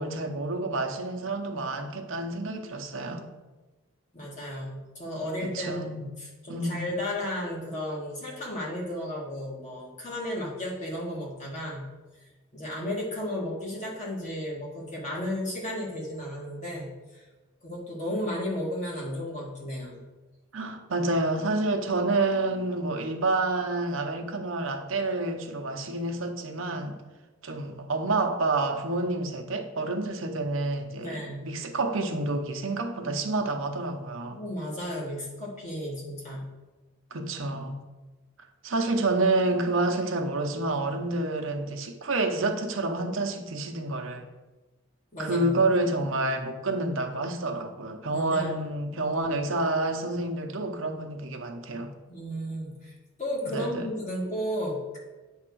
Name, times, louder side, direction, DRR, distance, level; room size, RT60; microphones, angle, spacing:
voice 1, 0.0-3.3 5.4-6.1 6.5-6.9 20.5-27.0 27.4-34.4 37.1-37.8 38.6-44.3 45.2-51.9 53.5-53.9, right 2 dB, 75° right, 4 dB, 0.8 m, -28 dB
voice 2, 4.1-11.9 12.5-17.2 17.6-20.1 31.0-31.5 34.3-36.5 45.1-45.6 48.1-48.5 52.1-55.0, left 1 dB, 35° left, -4 dB, 2.1 m, -34 dB
8.7 x 3.6 x 6.1 m, 1.2 s
head